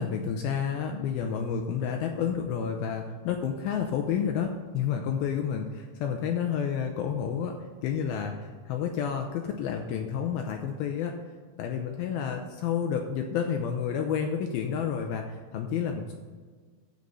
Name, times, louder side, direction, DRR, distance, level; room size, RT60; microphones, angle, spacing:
voice 1, 0.0-7.5 7.8-11.2 11.6-16.2, left 7 dB, 80° left, 3 dB, 2.2 m, -30 dB
12.5 x 4.8 x 5.4 m, 1.5 s
omnidirectional pair, 5.0 m